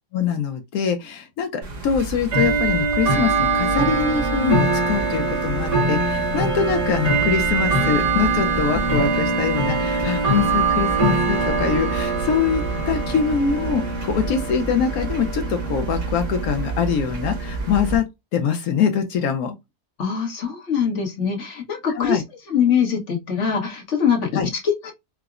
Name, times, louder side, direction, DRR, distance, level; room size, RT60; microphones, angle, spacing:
voice 1, 0.1-18.1 18.3-19.6 21.9-22.2 24.3-24.5, left 7 dB, 70° left, 1.0 m, -23 dB
Bell / Tick-tock, 1.6-18.0, right 3 dB, 55° right, 1.3 m, -23 dB
voice 2, 20.0-22.2 22.5-24.3 24.6-24.9, left 7 dB, 55° left, 1.2 m, -22 dB
4.6 x 2.0 x 2.3 m
omnidirectional pair, 1.7 m